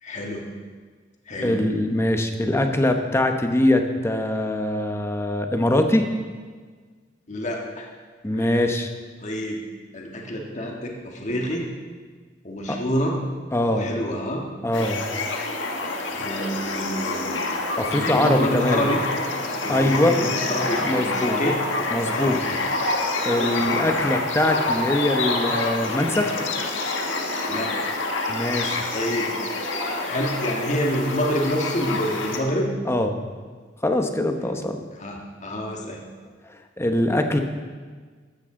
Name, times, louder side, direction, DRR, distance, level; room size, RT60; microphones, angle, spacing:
voice 1, 0.0-0.5 1.3-1.6 7.3-7.9 8.4-8.6 9.2-9.6 9.9-11.7 12.4-13.2 13.7-14.4 16.1-17.4 17.9-19.0 19.6-21.6 22.2-22.6 23.6-23.9 27.5-27.7 28.9-29.3 29.9-32.7 35.0-36.0, equal, 40° left, 0 dB, 1.6 m, -27 dB
voice 2, 1.4-6.1 8.2-8.9 12.7-12.8 13.5-13.9 14.6-15.0 17.8-18.9 19.7-20.1 20.8-21.4 21.9-22.4 23.2-26.3 28.3-28.8 32.9-33.1 33.8-34.8 36.5-37.4, left 1 dB, 15° left, 5 dB, 1.0 m, -22 dB
sound 1, 14.7-32.4, left 2 dB, 90° left, 1.5 m, -27 dB
13.5 x 13.0 x 3.8 m, 1.5 s
head